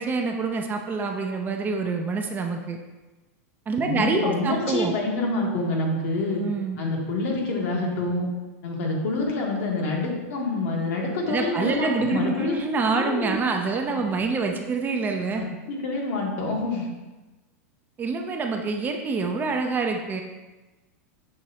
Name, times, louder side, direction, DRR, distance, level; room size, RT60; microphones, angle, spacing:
voice 1, 0.0-2.8 3.7-5.0 6.4-6.8 11.3-15.4 18.0-20.2, right 4 dB, 20° right, 3 dB, 0.4 m, -26 dB
voice 2, 3.8-6.4 6.8-8.3 8.6-12.6 12.9-13.4 15.4-16.9, left 2 dB, 65° left, -1 dB, 1.2 m, -27 dB
6.3 x 2.9 x 2.8 m, 1.1 s
hypercardioid pair, 120°, 8 cm